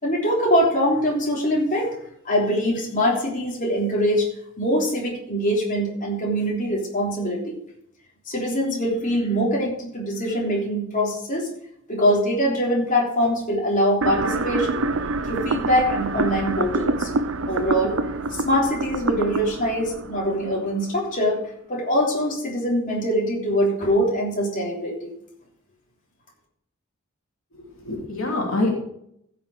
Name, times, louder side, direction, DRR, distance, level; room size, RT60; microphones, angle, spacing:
voice 1, 0.0-1.9 2.2-4.3 4.6-7.6 8.3-11.5 11.9-14.8 15.3-17.1 17.5-18.0 18.4-21.4 21.7-25.1, equal, 40° left, -3 dB, 3.3 m, -23 dB
sound 1, 14.0-21.0, right 3 dB, 70° right, 0.7 m, -27 dB
voice 2, 27.5-28.7, left 2 dB, 80° left, -1 dB, 2.9 m, -26 dB
15.5 x 6.1 x 4.9 m, 0.72 s
head